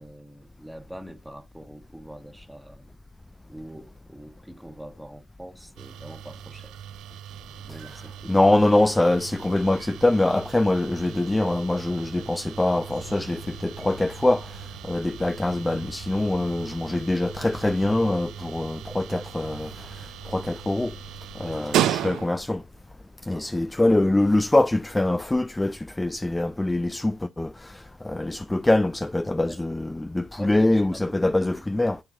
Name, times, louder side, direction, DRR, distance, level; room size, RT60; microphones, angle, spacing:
voice 1, 0.0-2.9 3.5-6.7 7.7-8.5 21.4-22.1 23.3-24.1 29.4-29.6 30.4-31.6, equal, 5° right, 1.4 m, -43 dB
sound 1, 5.8-22.6, right 11 dB, 65° right, 0.5 m, -36 dB
voice 2, 8.3-20.9 21.4-22.6 23.3-32.0, left 2 dB, 15° left, 0.4 m, -24 dB
sound 2, 12.9-23.6, left 3 dB, 80° left, 2.0 m, -49 dB
13.0 x 4.5 x 2.6 m
figure-of-eight pair, 45°, 0 cm